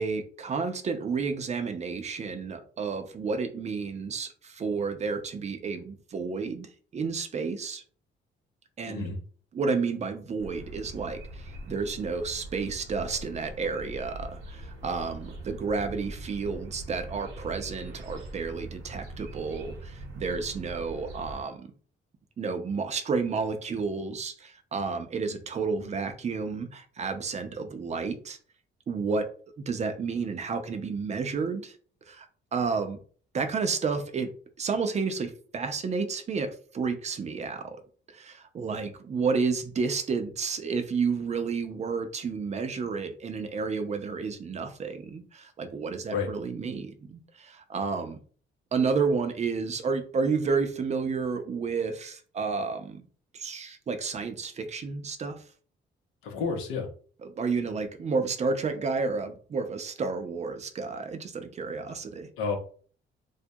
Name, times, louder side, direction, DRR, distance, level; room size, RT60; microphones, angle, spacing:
voice 1, 0.0-7.8 8.8-9.1 9.5-21.7 22.4-28.4 28.9-29.3 29.6-31.8 32.1-32.3 32.5-33.0 33.3-34.3 34.6-37.8 38.1-48.2 48.7-53.0 53.3-55.4 57.2-62.3, right 4 dB, 35° right, 8 dB, 0.4 m, -31 dB
voice 2, 8.9-9.2 46.1-46.3 56.2-56.9 62.4-62.6, left 5 dB, 90° left, 2 dB, 0.7 m, -30 dB
sound 1, 10.4-21.4, right 1 dB, 90° right, 0.7 m, -42 dB
2.2 x 2.1 x 2.6 m, 0.44 s
cardioid pair, 90°, 20 cm